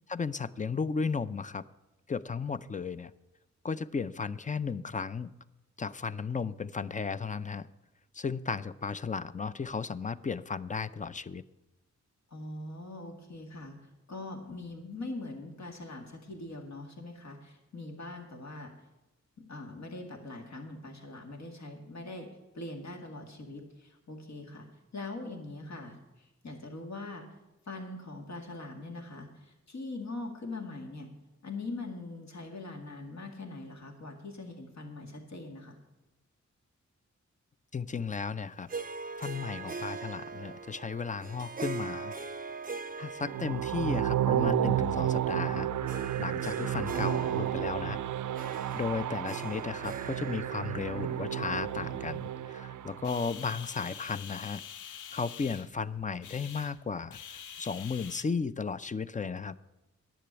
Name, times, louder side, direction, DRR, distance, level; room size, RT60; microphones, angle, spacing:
voice 1, 0.1-1.6 2.1-3.1 3.6-5.3 5.8-7.7 8.1-11.4 37.7-38.7 39.2-42.1 43.0-48.0 48.4-54.6 55.1-59.6, left 5 dB, 25° left, 15 dB, 0.4 m, -35 dB
voice 2, 12.3-13.8 14.1-18.7 19.5-22.3 22.5-24.7 24.9-27.3 27.7-31.1 31.4-35.8, left 2 dB, 65° left, 2 dB, 2.1 m, -42 dB
Harp, 38.7-52.3, right 4 dB, 30° right, 0.6 m, -42 dB
sound 1, 43.2-53.3, right 11 dB, 85° right, 0.5 m, -32 dB
sound 2, 53.0-58.2, left 8 dB, 90° left, 0.6 m, -45 dB
10.0 x 6.9 x 8.7 m, 1.0 s
wide cardioid pair, 80°, 30 cm